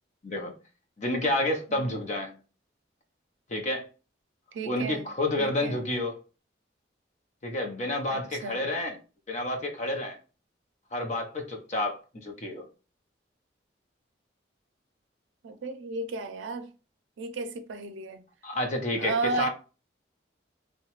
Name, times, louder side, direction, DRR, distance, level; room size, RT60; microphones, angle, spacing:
voice 1, 0.2-0.5 1.0-2.3 3.5-3.9 4.6-6.2 7.4-9.0 9.3-10.2 10.9-12.7 18.4-19.5, left 1 dB, 40° left, 0.6 m, -29 dB
voice 2, 4.5-5.1 5.4-5.8 8.1-8.7 15.4-16.7 17.2-18.2 19.0-19.5, right 3 dB, 90° right, 0.4 m, -34 dB
2.8 x 2.1 x 2.9 m
head